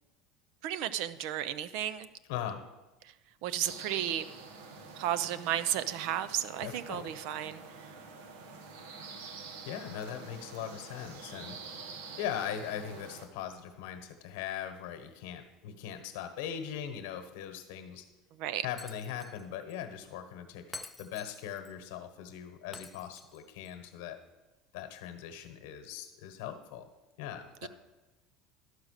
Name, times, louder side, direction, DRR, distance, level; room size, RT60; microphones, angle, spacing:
voice 1, 0.6-2.1 3.4-4.2 5.0-7.6 18.4-18.7 27.6-27.7, right 11 dB, 70° right, 14 dB, 0.5 m, -33 dB
voice 2, 2.3-2.7 6.6-7.1 9.6-11.6 12.2-18.1 18.6-24.2 24.7-26.9 27.2-27.7, left 9 dB, 80° left, 8 dB, 1.2 m, -40 dB
sound 1, 3.6-13.3, right 4 dB, 90° right, 1.0 m, -47 dB
Shatter, 18.8-19.4 19.7-19.8 20.7-21.7 22.7-23.7, left 3 dB, 10° left, 0.5 m, -48 dB
12.0 x 5.0 x 6.5 m, 1.1 s
supercardioid pair, 130°, 0 cm